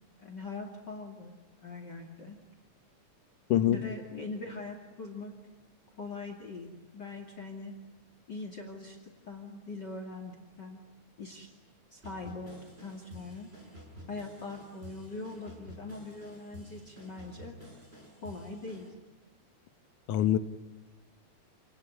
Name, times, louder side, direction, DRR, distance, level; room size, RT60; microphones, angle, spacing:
voice 1, 0.2-1.3 1.6-2.4 3.6-5.3 6.0-7.7 8.3-9.0 9.3-10.8 11.2-11.5 11.9-13.5 14.1-17.6 18.2-18.9, left 3 dB, 35° left, 5 dB, 3.0 m, -42 dB
voice 2, 3.5-3.8 20.1-20.4, left 11 dB, 85° left, 11 dB, 2.6 m, -24 dB
sound 1, 12.0-18.9, equal, 20° right, 6.2 m, -50 dB
28.5 x 20.0 x 9.8 m, 1.2 s
omnidirectional pair, 3.5 m